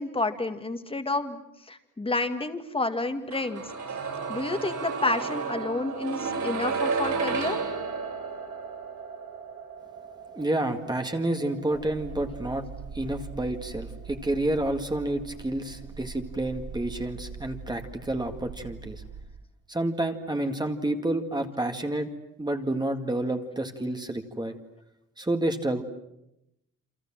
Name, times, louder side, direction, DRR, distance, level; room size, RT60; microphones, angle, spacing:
voice 1, 0.0-1.4 1.7-3.6 4.3-7.6, left 2 dB, 15° left, 8 dB, 2.1 m, -29 dB
sound 1, 3.3-15.1 15.4-15.5, right 5 dB, 70° right, 8.0 m, -34 dB
voice 2, 10.3-12.7 12.9-19.0 19.7-22.1 22.4-24.5 25.2-25.8, right 1 dB, 15° right, 5 dB, 2.0 m, -29 dB
sound 2, 11.7-19.2, right 5 dB, 85° right, 6.0 m, -42 dB
28.5 x 27.5 x 7.5 m, 0.85 s
wide cardioid pair, 140°, 31 cm